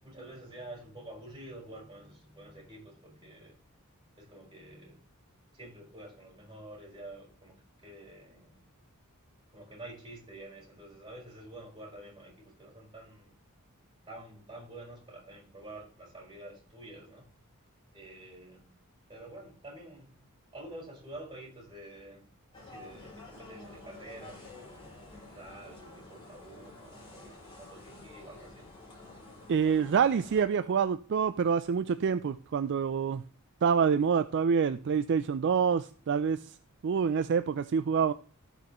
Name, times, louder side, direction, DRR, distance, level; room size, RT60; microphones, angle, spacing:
voice 1, 0.0-3.6 4.2-5.0 5.5-8.6 9.5-13.4 14.1-17.2 17.9-18.7 19.1-20.1 20.5-22.2 22.5-24.9 25.3-28.7, right 1 dB, 20° right, 4.9 m, -48 dB
sound 1, 22.5-30.4, left 2 dB, 25° left, 2.9 m, -50 dB
voice 2, 29.5-33.2 33.6-36.5 36.8-38.1, right 6 dB, 50° right, 0.3 m, -27 dB
16.0 x 5.4 x 3.0 m
head